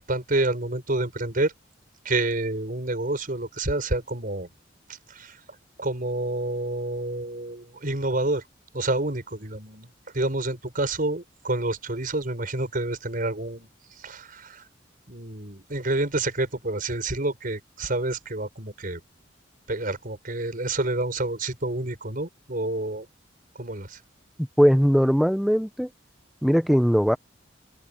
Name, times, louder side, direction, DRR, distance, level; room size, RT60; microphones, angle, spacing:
voice 1, 0.0-1.5 2.0-4.5 5.1-5.4 5.8-8.4 8.7-9.9 10.1-13.7 14.0-14.6 15.1-19.0 19.7-23.1 23.6-24.0, right 2 dB, 50° right, 5.6 m, -28 dB
voice 2, 24.4-25.9 26.4-27.2, equal, ahead, 0.9 m, -20 dB
head